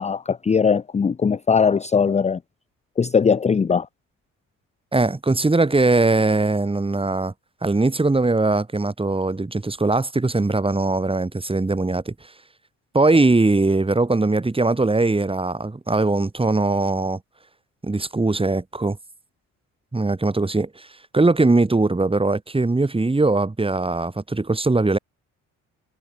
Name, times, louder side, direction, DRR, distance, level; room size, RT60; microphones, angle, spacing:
voice 1, 0.0-2.4 3.0-3.9, left 6 dB, 20° left, 0.6 m, -20 dB
voice 2, 4.9-7.3 7.6-12.3 12.9-17.2 17.8-19.0 19.9-20.9 21.1-25.0, right 2 dB, 15° right, 4.6 m, -20 dB
cardioid pair, 85°, 33 cm